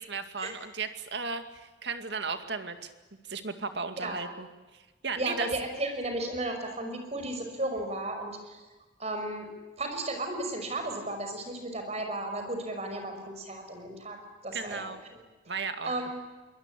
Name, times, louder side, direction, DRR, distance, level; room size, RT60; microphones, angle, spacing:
voice 1, 0.0-2.9 3.2-4.5 4.7-5.5 14.5-15.0 15.5-15.9, right 4 dB, 65° right, 8 dB, 2.2 m, -35 dB
voice 2, 5.2-8.6 9.0-9.5 9.8-15.2 15.9-16.2, right 2 dB, 35° right, 5 dB, 5.7 m, -34 dB
23.5 x 20.5 x 9.9 m, 1.2 s
head